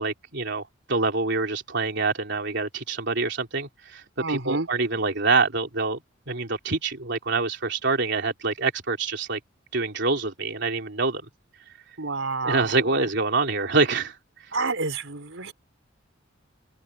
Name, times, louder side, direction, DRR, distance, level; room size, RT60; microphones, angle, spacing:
voice 1, 0.0-6.0 6.3-9.4 9.7-11.2 12.4-14.2, right 3 dB, 65° right, 3.4 m, -26 dB
voice 2, 4.2-4.7 12.0-13.1 14.5-15.5, right 3 dB, 80° right, 4.4 m, -29 dB
open air
head